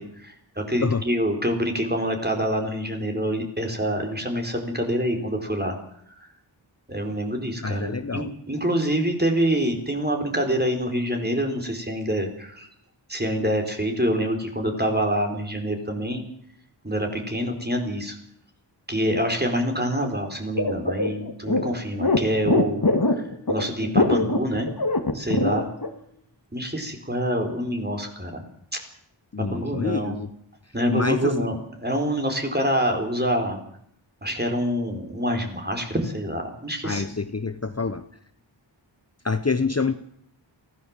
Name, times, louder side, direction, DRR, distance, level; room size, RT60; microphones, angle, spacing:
voice 1, 0.0-5.8 6.9-12.7 13.1-16.2 16.8-18.2 18.9-24.7 25.1-25.7 26.5-28.4 28.7-28.8 29.5-30.2 30.7-33.6 34.2-37.2, equal, 20° right, 3 dB, 4.7 m, -26 dB
voice 2, 7.6-8.3 29.3-30.3 30.9-31.5 36.8-38.0 39.2-39.9, left 4 dB, 35° left, 11 dB, 1.0 m, -26 dB
sound 1, 20.6-25.9, left 2 dB, 50° left, 2.4 m, -22 dB
23.5 x 16.5 x 7.6 m, 0.70 s
wide cardioid pair, 65°, 46 cm